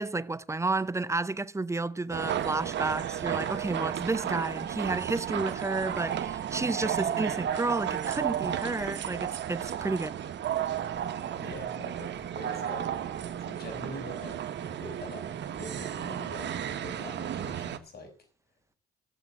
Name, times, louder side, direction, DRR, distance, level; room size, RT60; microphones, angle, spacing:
voice 1, 0.0-10.1, right 3 dB, 15° right, 0.6 m, -31 dB
sound 1, 2.1-17.8, right 10 dB, 65° right, 1.3 m, -33 dB
voice 2, 11.3-18.2, left 1 dB, 55° left, 5.9 m, -44 dB
15.5 x 7.2 x 7.6 m
cardioid pair, 90°, 20 cm